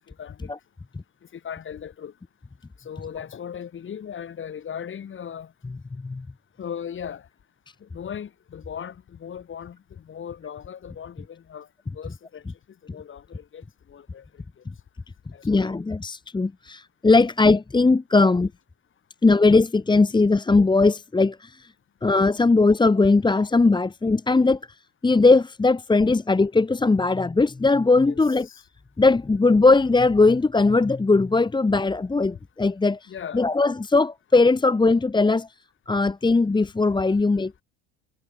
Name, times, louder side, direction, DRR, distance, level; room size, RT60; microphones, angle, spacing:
voice 1, 0.1-0.5 1.3-2.1 2.8-5.5 6.6-7.3 7.8-11.7 11.9-12.4 12.8-14.2 15.3-15.8 28.1-28.2 28.5-28.6 33.1-33.5, left 8 dB, 40° left, 6.7 m, -38 dB
voice 2, 15.4-18.5 19.2-21.7 22.0-24.6 25.0-28.5 29.0-35.5 35.9-37.6, left 3 dB, 15° left, 1.7 m, -19 dB
supercardioid pair, 105°, 32 cm